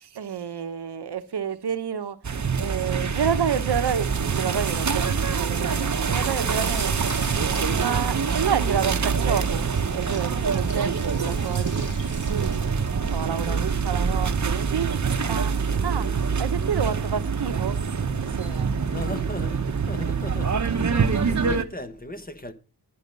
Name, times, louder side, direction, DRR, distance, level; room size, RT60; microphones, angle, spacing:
voice 1, 0.0-2.2 2.6-7.2 7.8-11.8 12.1-12.6 13.1-14.9 15.3-15.5 15.8-16.1 16.4-17.8 18.4-18.7, right 7 dB, 75° right, 1.0 m, -29 dB
sound 1, 2.2-21.6, right 5 dB, 45° right, 1.0 m, -25 dB
Gurgling / Sink (filling or washing) / Bathtub (filling or washing), 5.6-15.5, left 2 dB, 45° left, 4.3 m, -46 dB
voice 2, 18.9-20.6 20.9-22.5, left 2 dB, 20° left, 1.3 m, -37 dB
11.0 x 9.4 x 5.3 m
wide cardioid pair, 80°, 40 cm